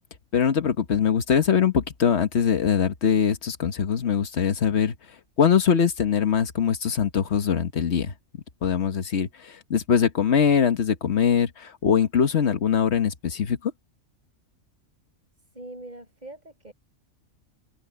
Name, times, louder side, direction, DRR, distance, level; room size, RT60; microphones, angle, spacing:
voice 1, 0.3-4.9 5.4-8.1 8.6-13.7, left 7 dB, 55° left, 1.5 m, -22 dB
voice 2, 15.5-16.7, right 2 dB, 30° right, 7.2 m, -42 dB
omnidirectional pair, 1.4 m